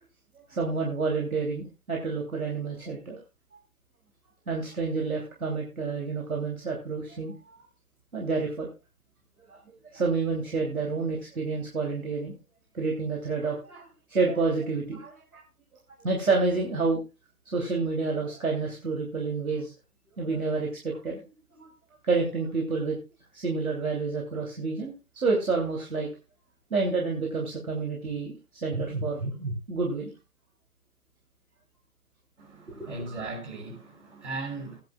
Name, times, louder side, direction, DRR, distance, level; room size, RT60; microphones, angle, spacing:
voice 1, 0.5-3.2 4.5-7.6 8.1-8.7 9.5-9.6 9.9-12.3 12.7-15.4 16.0-17.0 17.5-19.7 20.2-21.2 21.6-21.7 22.0-23.0 23.3-26.1 26.7-30.1 32.7-32.9, right 4 dB, 65° right, 3.0 m, -29 dB
voice 2, 32.4-34.8, right 3 dB, 45° right, 5.5 m, -37 dB
16.0 x 10.5 x 2.3 m
figure-of-eight pair, 150°, 47 cm